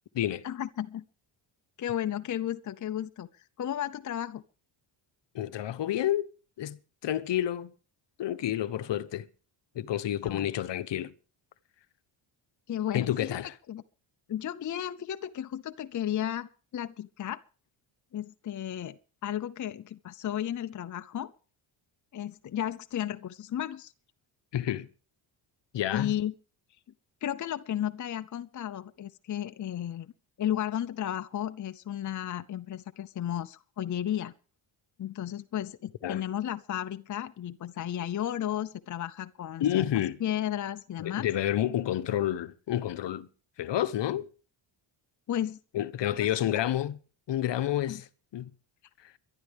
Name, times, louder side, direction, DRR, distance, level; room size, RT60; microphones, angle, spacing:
voice 1, 0.4-1.0 1.8-4.4 10.2-10.5 12.7-13.4 13.7-13.8 14.3-17.4 18.1-21.3 22.1-23.9 25.9-26.3 27.2-30.1 30.4-34.3 35.0-39.8 40.2-41.3 45.3-45.6 46.2-46.3 47.9-48.0, left 11 dB, 40° left, 0.7 m, -33 dB
voice 2, 5.3-6.2 6.6-7.7 8.2-9.3 9.7-11.1 12.9-13.5 24.5-24.9 25.7-26.1 36.0-36.2 39.6-40.2 41.0-43.3 43.6-44.3 45.7-47.0 47.3-48.1 48.3-48.5 49.0-49.1, left 12 dB, 60° left, 1.0 m, -29 dB
23.0 x 11.5 x 3.5 m
cardioid pair, 100°, 49 cm